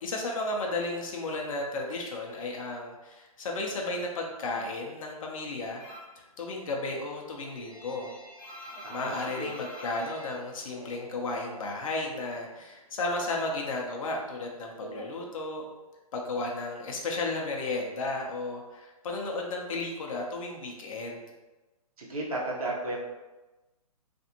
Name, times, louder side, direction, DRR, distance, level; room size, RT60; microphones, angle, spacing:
voice 1, 0.0-8.1 8.9-15.6 16.1-21.2, left 2 dB, 60° left, 0 dB, 0.6 m, -34 dB
sound 1, 5.8-6.2 6.6-11.5 11.7-12.8 13.1-15.9, equal, 40° left, 0.9 m, -46 dB
voice 2, 8.8-9.5 22.0-23.0, right 2 dB, 65° right, -3 dB, 0.9 m, -34 dB
2.5 x 2.4 x 2.8 m, 1.1 s
figure-of-eight pair, 135°, 20 cm